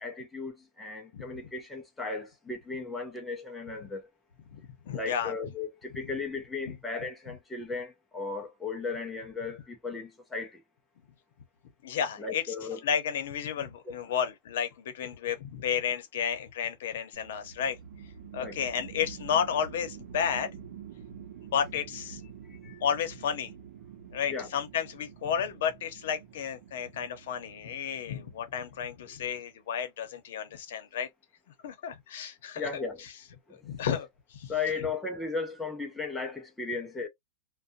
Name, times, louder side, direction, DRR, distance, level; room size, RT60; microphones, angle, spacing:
voice 1, 0.0-4.0 4.9-10.6 12.2-12.8 13.9-14.0 18.4-18.6 22.5-22.8 24.3-24.5 32.6-33.0 33.5-33.6 34.5-37.1, left 4 dB, 5° left, 0.5 m, -36 dB
voice 2, 4.5-5.3 6.7-6.8 11.8-12.5 12.8-17.8 18.3-20.5 21.5-22.2 22.8-23.5 24.1-31.1 31.6-33.1 33.6-34.5, left 8 dB, 65° left, 0.8 m, -32 dB
sound 1, 17.1-29.2, right 7 dB, 65° right, 0.7 m, -48 dB
2.6 x 2.1 x 2.5 m
supercardioid pair, 170°, 0 cm